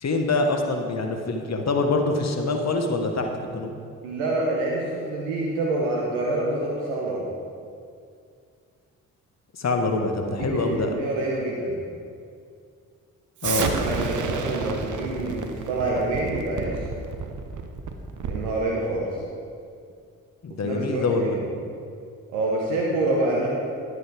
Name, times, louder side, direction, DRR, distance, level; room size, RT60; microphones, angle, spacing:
voice 1, 0.0-3.7 9.5-11.0 13.4-13.7 20.4-21.4, left 3 dB, 45° left, 4 dB, 1.3 m, -25 dB
voice 2, 4.0-7.2 10.3-11.8 13.4-16.8 18.3-19.1 20.6-21.4 22.3-23.6, right 2 dB, 90° right, -3 dB, 1.1 m, -27 dB
Explosion, 13.4-18.5, right 5 dB, 55° right, 0.9 m, -30 dB
11.5 x 8.3 x 3.5 m, 2.3 s
hypercardioid pair, 45°, 37 cm